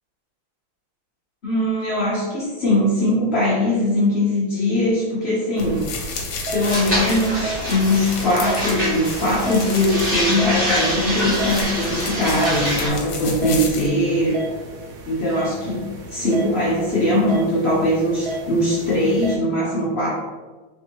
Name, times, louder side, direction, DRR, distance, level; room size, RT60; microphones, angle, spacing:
voice 1, 1.4-5.9 6.5-14.4 15.1-20.1, left 1 dB, 55° left, -7 dB, 0.7 m, -21 dB
sound 1, 5.6-13.9, left 3 dB, 90° left, 1.5 m, -32 dB
sound 2, 5.6-19.4, right 2 dB, 70° right, 1.0 m, -34 dB
sound 3, 6.6-12.9, equal, 25° right, 1.1 m, -25 dB
3.5 x 3.4 x 2.8 m, 1.3 s
omnidirectional pair, 2.2 m